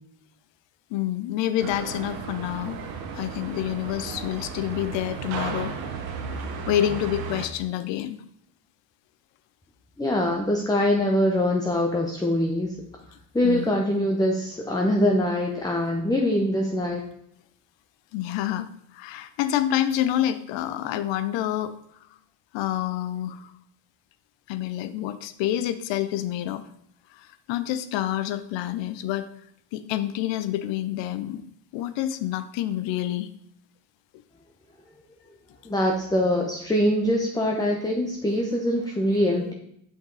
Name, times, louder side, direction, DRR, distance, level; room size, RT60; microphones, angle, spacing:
voice 1, 0.9-2.8 3.1-5.8 6.7-8.2 13.4-13.7 18.1-18.7 18.9-21.7 22.5-23.5 24.5-26.6 27.5-29.3 29.7-31.4 31.7-33.3, left 12 dB, 65° left, 12 dB, 0.7 m, -27 dB
sound 1, 1.6-7.5, right 6 dB, 85° right, 1.0 m, -34 dB
voice 2, 10.0-12.7 13.3-17.0 35.6-39.5, left 1 dB, 10° left, 1 dB, 0.8 m, -23 dB
5.5 x 5.3 x 3.9 m, 0.73 s
supercardioid pair, 70°, 47 cm